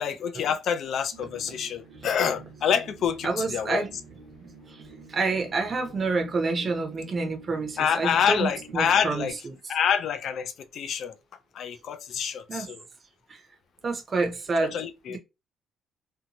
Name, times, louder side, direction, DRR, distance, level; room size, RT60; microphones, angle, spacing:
voice 1, 0.0-3.8 7.8-9.3 9.7-11.1 11.5-12.8 14.6-15.2, left 8 dB, 60° left, 0.4 m, -27 dB
sound 1, 1.1-9.3, right 3 dB, 80° right, 0.8 m, -48 dB
voice 2, 3.2-3.9 5.1-8.5 8.7-9.3 12.5-12.6 13.3-13.4 13.8-14.7, right 3 dB, 30° right, 0.6 m, -27 dB
2.7 x 2.1 x 2.8 m
cardioid pair, 125°, 0 cm